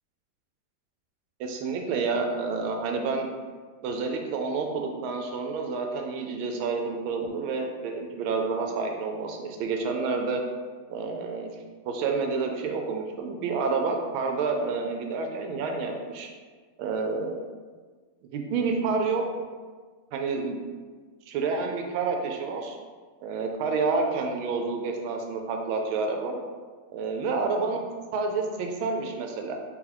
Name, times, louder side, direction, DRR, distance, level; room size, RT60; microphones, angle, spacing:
voice 1, 1.4-3.3 3.8-10.4 10.9-11.5 11.8-16.3 16.8-17.4 18.2-19.2 20.1-20.6 21.3-22.8 23.2-26.4 26.9-29.6, right 4 dB, 80° right, 3 dB, 1.4 m, -29 dB
3.8 x 3.0 x 3.8 m, 1.5 s
omnidirectional pair, 2.3 m